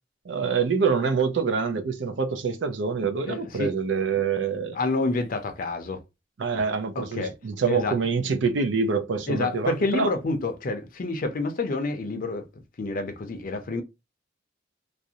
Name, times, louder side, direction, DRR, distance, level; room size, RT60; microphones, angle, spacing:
voice 1, 0.3-4.8 6.4-10.1, right 5 dB, 70° right, 0.4 m, -26 dB
voice 2, 3.3-3.8 4.7-6.0 7.0-7.4 7.7-8.0 9.3-12.4 12.8-13.8, left 3 dB, 50° left, 0.5 m, -28 dB
2.4 x 2.0 x 2.7 m
head